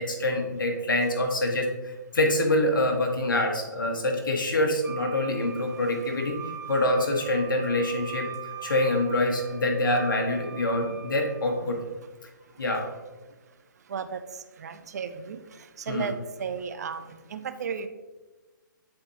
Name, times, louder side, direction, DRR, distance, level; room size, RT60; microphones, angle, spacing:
voice 1, 0.0-6.4 6.7-8.3 8.6-11.8 12.6-12.9 15.9-16.1, left 1 dB, 75° left, 2 dB, 1.5 m, -25 dB
Wind instrument woodwind instrument, 4.8-11.6, right 10 dB, 80° right, 1.0 m, -42 dB
voice 2, 14.6-15.4 15.9-16.1 16.4-17.9, right 7 dB, 50° right, 10 dB, 0.5 m, -34 dB
8.3 x 4.4 x 2.8 m, 1.2 s
figure-of-eight pair, 140°, 11 cm